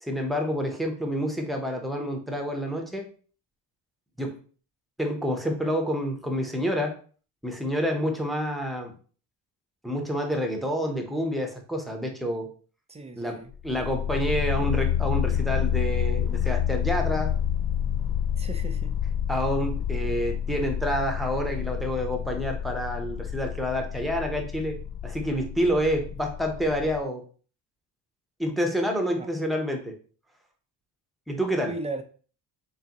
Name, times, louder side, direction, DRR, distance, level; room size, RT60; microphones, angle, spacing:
voice 1, 0.0-3.1 4.2-4.4 5.0-7.0 7.4-8.9 9.8-12.5 13.2-17.3 19.3-24.8 25.0-27.2 28.4-30.0 31.3-31.7, equal, ahead, 2 dB, 0.8 m, -28 dB
voice 2, 12.9-13.5 18.4-18.9 29.2-29.3 31.6-32.0, right 2 dB, 15° right, 7 dB, 0.5 m, -36 dB
sound 1, 13.5-27.0, left 9 dB, 65° left, 0.5 m, -29 dB
4.0 x 3.4 x 2.9 m, 0.41 s
cardioid pair, 95°, 43 cm